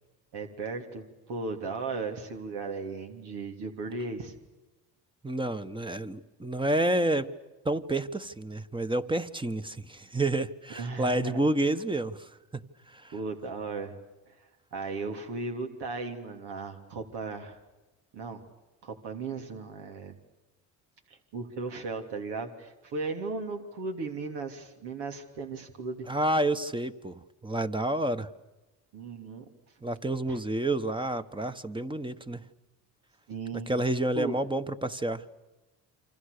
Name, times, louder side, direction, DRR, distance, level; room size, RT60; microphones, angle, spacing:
voice 1, 0.3-4.3 10.7-11.4 13.1-14.0 14.7-17.6 18.1-18.4 18.8-20.2 21.1-26.1 28.9-29.4 30.3-30.4 33.3-33.7 34.1-34.4, right 3 dB, 75° right, 4 dB, 3.3 m, -36 dB
voice 2, 5.2-7.3 7.6-12.6 12.9-13.1 26.1-28.3 29.8-32.4 33.5-35.2, right 1 dB, 10° right, 10 dB, 1.3 m, -29 dB
28.5 x 25.5 x 6.8 m, 1.1 s
cardioid pair, 90°, 40 cm